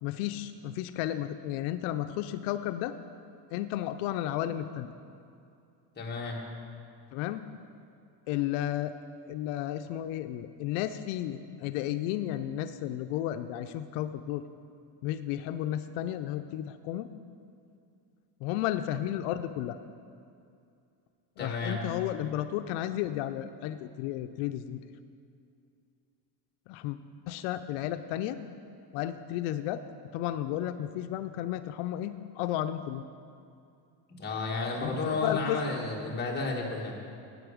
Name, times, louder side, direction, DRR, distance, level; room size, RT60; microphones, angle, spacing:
voice 1, 0.0-3.0 3.5-4.9 7.1-7.4 8.3-8.9 9.3-14.4 15.0-17.1 18.4-19.8 21.4-24.8 26.7-27.0 27.3-28.4 28.9-29.8 30.1-33.0 34.8-35.6, left 12 dB, 85° left, 10 dB, 0.6 m, -33 dB
voice 2, 6.0-6.4 21.4-21.8 34.2-36.9, left 3 dB, 20° left, -3 dB, 1.6 m, -32 dB
11.0 x 8.6 x 5.0 m, 2.5 s
cardioid pair, 155°, 49 cm